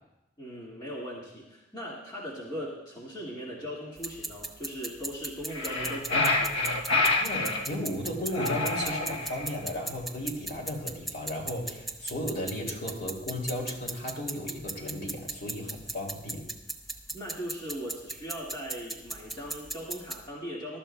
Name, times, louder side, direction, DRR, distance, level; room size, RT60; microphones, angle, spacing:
voice 1, 0.4-6.7 17.1-20.8, equal, 20° left, -6 dB, 1.9 m, -39 dB
sound 1, 4.0-20.2, right 2 dB, ahead, 0.7 m, -39 dB
sound 2, 5.5-7.7 8.3-9.6, left 2 dB, 70° left, 1.4 m, -27 dB
voice 2, 7.2-16.5, left 1 dB, 50° left, -1 dB, 2.6 m, -35 dB
22.0 x 12.5 x 2.3 m, 0.97 s
head